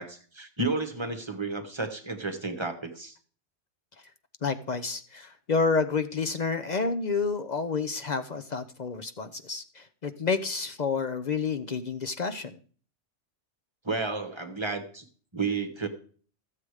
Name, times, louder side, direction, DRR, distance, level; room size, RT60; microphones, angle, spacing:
voice 1, 0.0-3.1 13.8-15.0 15.3-15.9, right 3 dB, 25° right, 6 dB, 1.2 m, -32 dB
voice 2, 4.4-12.6, left 4 dB, 45° left, 10 dB, 0.6 m, -29 dB
13.0 x 7.6 x 4.8 m, 0.44 s
omnidirectional pair, 1.2 m